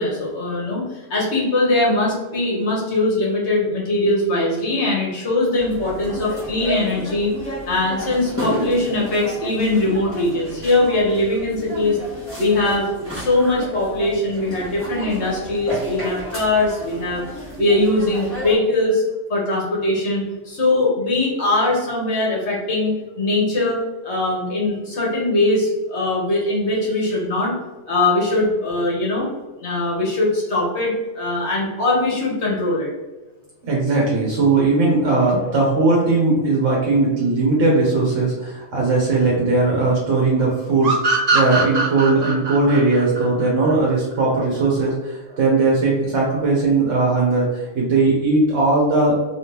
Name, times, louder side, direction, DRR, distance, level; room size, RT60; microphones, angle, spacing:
voice 1, 0.0-12.0 12.4-12.9 13.1-19.0 19.3-27.5 27.9-29.3 29.6-32.9, left 2 dB, 60° left, -3 dB, 1.4 m, -21 dB
sound 1, 5.6-18.6, equal, 10° left, 1.2 m, -32 dB
voice 2, 33.6-49.1, right 3 dB, 70° right, -3 dB, 1.2 m, -18 dB
sound 2, 40.8-44.2, right 3 dB, 50° right, 0.5 m, -21 dB
3.4 x 3.2 x 2.9 m, 1.1 s
omnidirectional pair, 1.3 m